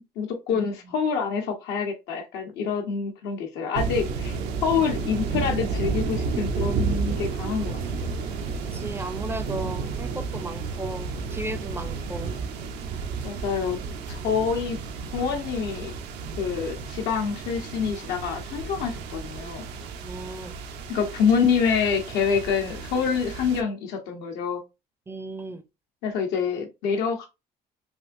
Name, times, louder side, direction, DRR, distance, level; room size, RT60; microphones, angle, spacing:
voice 1, 0.2-7.7 8.0-8.1 13.2-13.8 14.1-14.8 15.1-15.9 16.4-19.6 20.9-24.6 26.0-27.3, left 6 dB, 85° left, 1.0 m, -26 dB
sound 1, 3.8-23.6, right 5 dB, 90° right, 0.5 m, -32 dB
sound 2, 7.1-12.5, left 2 dB, 40° left, 0.7 m, -43 dB
voice 2, 8.7-12.3 20.0-20.5 25.1-25.6, right 2 dB, 15° right, 0.4 m, -35 dB
3.5 x 2.5 x 2.5 m
cardioid pair, 110°, 17 cm